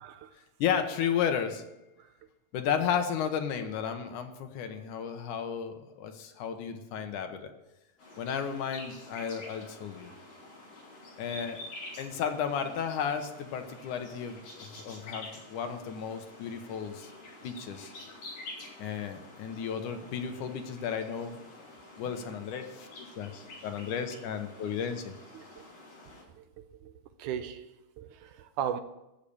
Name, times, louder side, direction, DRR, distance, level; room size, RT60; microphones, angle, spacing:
voice 1, 0.0-0.3 2.0-2.1 25.3-25.7 26.4-28.8, right 9 dB, 75° right, 2.0 m, -38 dB
voice 2, 0.6-1.7 2.5-7.5 8.2-10.1 11.2-11.6 12.0-17.1 17.4-17.9 18.8-21.4 22.0-22.9 23.2-25.1, left 7 dB, 70° left, 2.5 m, -33 dB
sound 1, 8.0-26.2, left 2 dB, 55° left, 5.8 m, -48 dB
14.0 x 6.7 x 8.7 m
omnidirectional pair, 3.9 m